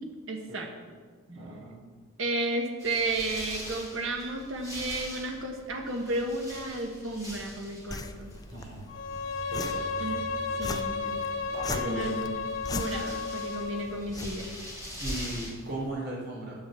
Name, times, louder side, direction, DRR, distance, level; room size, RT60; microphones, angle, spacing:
voice 1, 0.3-0.7 2.2-8.3 10.0-10.2 10.6-11.2 11.8-12.4 12.7-14.5, right 2 dB, 65° right, 2 dB, 1.4 m, -33 dB
voice 2, 1.3-1.8 8.5-8.8 9.5-9.8 11.7-12.1 15.0-16.6, right 2 dB, 50° right, -4 dB, 3.6 m, -37 dB
sound 1, 2.8-15.5, equal, 15° right, 3.6 m, -43 dB
sound 2, 7.9-15.9, left 3 dB, 20° left, 0.4 m, -41 dB
Bowed string instrument, 8.9-14.0, left 4 dB, 65° left, 0.7 m, -33 dB
10.5 x 5.4 x 7.5 m, 1.5 s
head